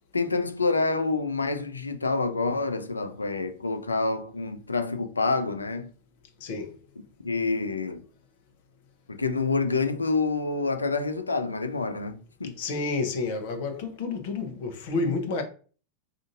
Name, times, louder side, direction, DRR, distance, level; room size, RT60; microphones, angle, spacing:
voice 1, 0.1-5.9 7.2-8.0 9.1-12.5, left 3 dB, 80° left, 0.5 m, -27 dB
voice 2, 6.4-6.8 12.6-15.4, left 3 dB, 50° left, 0.9 m, -30 dB
5.1 x 2.5 x 2.5 m
figure-of-eight pair, 90°, 0 cm